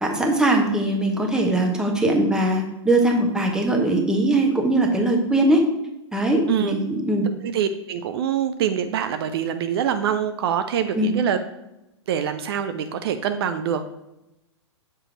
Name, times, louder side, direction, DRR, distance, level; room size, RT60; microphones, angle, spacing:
voice 1, 0.0-5.6 6.1-7.3 10.9-11.1, right 1 dB, 5° right, 1 dB, 0.9 m, -21 dB
voice 2, 7.4-11.4 12.1-13.9, right 8 dB, 55° right, 9 dB, 0.4 m, -24 dB
6.6 x 2.9 x 5.0 m, 0.92 s
hypercardioid pair, 110°, 15 cm